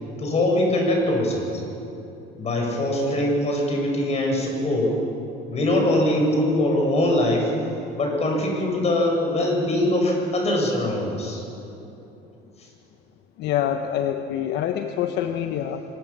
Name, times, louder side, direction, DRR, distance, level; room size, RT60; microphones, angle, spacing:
voice 1, 0.2-1.6 2.4-5.0 5.5-7.5 7.9-11.4 12.6-12.7, left 1 dB, 35° left, 1 dB, 7.8 m, -22 dB
voice 2, 13.4-15.8, left 10 dB, 65° left, 7 dB, 1.2 m, -26 dB
25.0 x 21.5 x 7.6 m, 2.9 s
cardioid pair, 110°, 19 cm